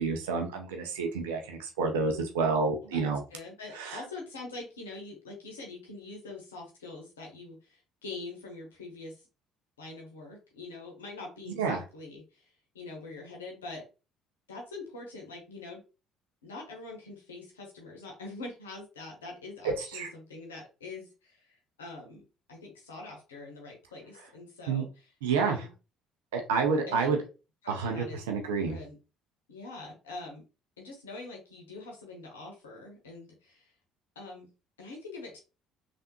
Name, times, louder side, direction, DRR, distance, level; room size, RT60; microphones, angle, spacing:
voice 1, 0.0-3.2 3.7-4.0 11.6-11.8 19.8-20.1 24.7-24.8 25.2-25.6 26.3-27.2 27.7-28.8, right 4 dB, 80° right, 3 dB, 0.5 m, -29 dB
voice 2, 3.3-9.2 9.8-13.8 14.5-15.8 16.4-22.2 22.5-25.7 26.9-27.2 27.6-28.2 28.6-29.0 29.5-30.4 30.8-33.7 34.1-34.5 34.8-35.4, left 3 dB, 85° left, 0 dB, 0.8 m, -44 dB
3.4 x 2.4 x 2.8 m, 0.32 s
hypercardioid pair, 55°, 0 cm